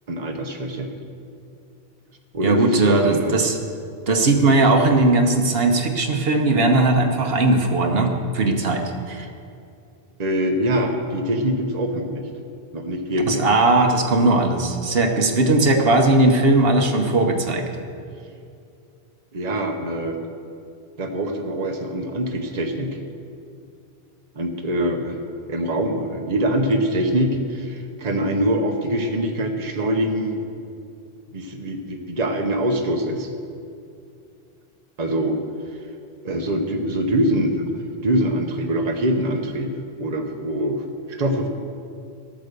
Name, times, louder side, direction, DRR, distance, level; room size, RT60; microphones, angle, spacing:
voice 1, 0.1-0.9 2.3-3.3 10.2-12.3 12.7-13.5 19.3-20.2 21.0-23.0 24.4-25.2 25.5-30.4 31.3-33.3 35.0-35.4 36.2-37.6 38.0-39.7 40.0-41.5, right 1 dB, 40° right, 3 dB, 1.1 m, -24 dB
voice 2, 2.4-3.6 4.1-8.8 9.1-9.3 13.3-17.7, right 2 dB, 70° right, 3 dB, 1.2 m, -18 dB
13.5 x 8.6 x 6.8 m, 2.4 s
omnidirectional pair, 1.0 m